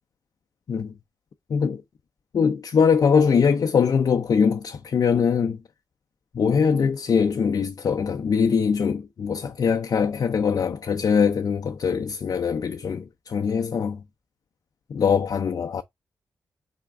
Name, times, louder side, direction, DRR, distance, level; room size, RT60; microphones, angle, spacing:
voice 1, 1.5-1.8 2.3-5.6 6.3-14.0 14.9-15.8, left 6 dB, 60° left, 0.5 m, -22 dB
4.2 x 3.4 x 3.5 m
cardioid pair, 80°, 7 cm